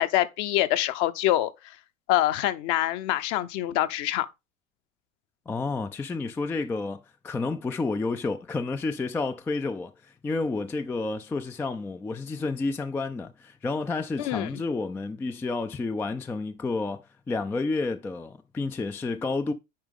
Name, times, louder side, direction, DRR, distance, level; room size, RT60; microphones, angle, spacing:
voice 1, 0.0-1.5 2.1-4.3 14.2-14.5, left 14 dB, 45° left, 0.9 m, -25 dB
voice 2, 5.5-19.5, left 3 dB, 5° left, 0.3 m, -30 dB
8.9 x 5.0 x 3.6 m
figure-of-eight pair, 80°, 40 cm